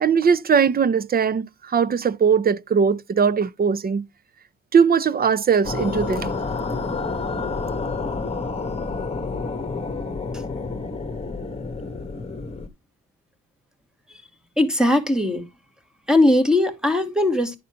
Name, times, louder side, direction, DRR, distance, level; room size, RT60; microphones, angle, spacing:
voice 1, 0.0-4.0 4.7-6.3, right 6 dB, 30° right, 0.6 m, -20 dB
sound 1, 5.6-12.7, left 4 dB, 20° left, 1.8 m, -29 dB
voice 2, 14.6-15.4 16.1-17.6, left 1 dB, ahead, 2.2 m, -19 dB
12.0 x 4.1 x 5.1 m
cardioid pair, 90°, 30 cm